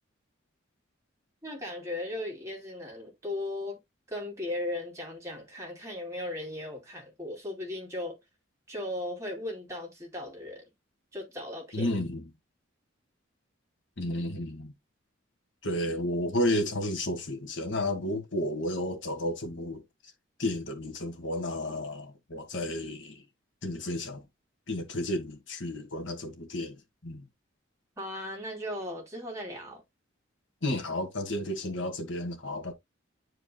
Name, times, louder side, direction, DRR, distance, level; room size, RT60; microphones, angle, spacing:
voice 1, 1.4-3.8 4.1-8.2 8.7-10.6 11.1-11.9 28.0-29.8, left 1 dB, 15° right, 3.1 m, -37 dB
voice 2, 11.7-12.2 14.0-14.7 15.6-19.8 20.4-23.2 23.6-24.2 24.7-26.7 27.0-27.3 30.6-32.7, left 1 dB, 65° left, 1.8 m, -32 dB
10.0 x 4.8 x 2.3 m
head